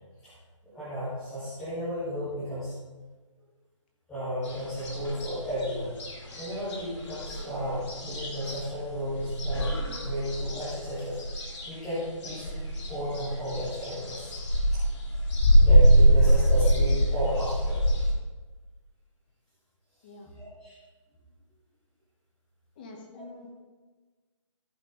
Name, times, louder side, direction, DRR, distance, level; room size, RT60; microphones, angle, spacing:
voice 1, 0.7-2.7 4.1-5.9 6.4-11.2 11.6-14.3 14.7-14.8 15.6-17.8 20.4-20.7 23.1-23.2, equal, ahead, -17 dB, 0.4 m, -33 dB
sound 1, 4.4-18.1, right 1 dB, 60° left, 2.5 m, -24 dB
voice 2, 22.8-23.5, left 2 dB, 15° left, 2 dB, 0.9 m, -46 dB
14.5 x 5.2 x 3.8 m, 1.3 s
hypercardioid pair, 170°, 17 cm